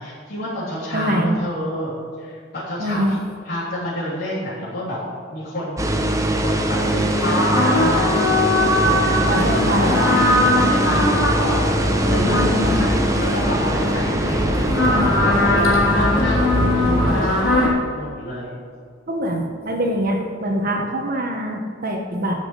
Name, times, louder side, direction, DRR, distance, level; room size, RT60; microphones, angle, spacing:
voice 1, 0.0-1.9 2.2-5.0 5.3-8.4 8.8-10.3 10.5-11.6 12.1-18.5 20.8-20.9, left 1 dB, 50° left, -11 dB, 3.5 m, -29 dB
voice 2, 0.9-1.4 2.8-3.2 9.3-9.9 12.1-12.8 15.6-15.8 19.1-22.3, equal, 50° right, 1 dB, 1.3 m, -24 dB
sound 1, 5.8-17.3, right 1 dB, 15° right, 0.9 m, -22 dB
sound 2, 6.8-17.7, left 1 dB, 80° left, 3.7 m, -21 dB
13.0 x 6.1 x 8.1 m, 2.1 s
head